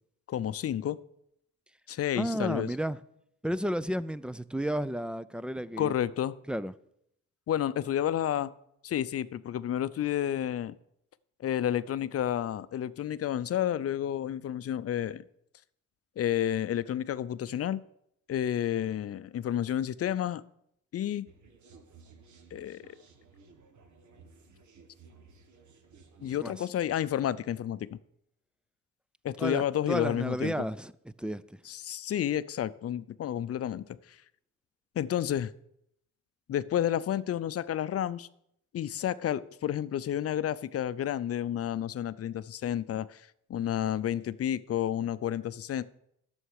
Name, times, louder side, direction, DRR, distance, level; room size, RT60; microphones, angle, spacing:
voice 1, 0.3-1.0 1.9-2.7 5.8-6.4 7.5-8.5 8.8-10.8 11.4-15.2 16.2-17.8 18.3-20.4 20.9-21.3 22.5-22.9 26.2-28.0 29.2-30.6 31.7-34.2 35.0-35.5 36.5-38.3 38.7-45.8, left 10 dB, 50° left, 0.6 m, -30 dB
voice 2, 2.1-3.0 3.4-5.9 6.5-6.7 26.2-26.5 29.4-30.9 31.2-31.6, equal, 5° right, 0.3 m, -32 dB
sound 1, 21.3-26.4, right 4 dB, 65° right, 1.6 m, -57 dB
11.0 x 7.2 x 6.5 m
cardioid pair, 110°, 32 cm